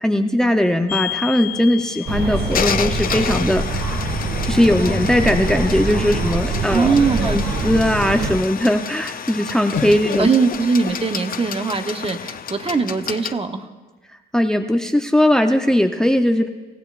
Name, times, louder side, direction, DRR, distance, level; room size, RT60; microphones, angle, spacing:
voice 1, 0.0-4.0 4.4-6.9 7.2-10.3 14.3-16.5, left 1 dB, 5° left, 5 dB, 0.7 m, -19 dB
sound 1, 0.9-13.3, left 8 dB, 45° left, 0.7 m, -30 dB
sound 2, 1.4-2.5 4.5-6.0 6.8-6.9 7.2-7.8 9.7-11.6 12.5-13.2, left 6 dB, 75° left, 1.8 m, -35 dB
sound 3, 2.1-8.4, right 2 dB, 50° right, 2.0 m, -24 dB
voice 2, 6.7-7.4 10.2-13.7, right 4 dB, 30° right, 7 dB, 1.0 m, -20 dB
26.0 x 15.0 x 2.5 m, 1.3 s
cardioid pair, 90°, 20 cm